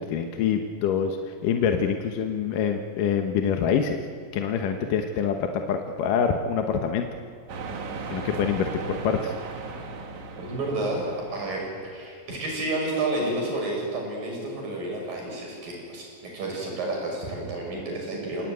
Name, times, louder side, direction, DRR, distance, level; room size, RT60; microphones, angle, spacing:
voice 1, 0.0-4.0 4.3-7.1 8.1-9.3, left 7 dB, 75° left, 4 dB, 2.7 m, -25 dB
sound 1, 7.5-12.0, right 4 dB, 60° right, 3.2 m, -37 dB
voice 2, 10.4-18.5, right 2 dB, 85° right, -1 dB, 8.5 m, -30 dB
28.5 x 18.5 x 9.4 m, 2.2 s
omnidirectional pair, 3.9 m